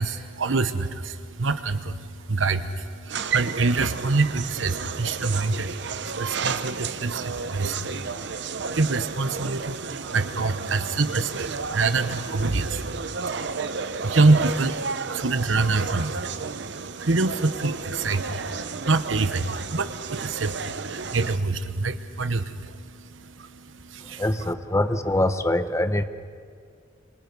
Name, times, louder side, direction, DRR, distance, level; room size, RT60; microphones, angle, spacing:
voice 1, 0.0-24.5, right 3 dB, 90° right, 11 dB, 1.1 m, -26 dB
sound 1, 3.1-21.4, right 5 dB, 65° right, 0.8 m, -32 dB
voice 2, 24.2-26.0, left 1 dB, 15° left, 10 dB, 0.8 m, -23 dB
26.5 x 26.0 x 5.5 m, 2.1 s
head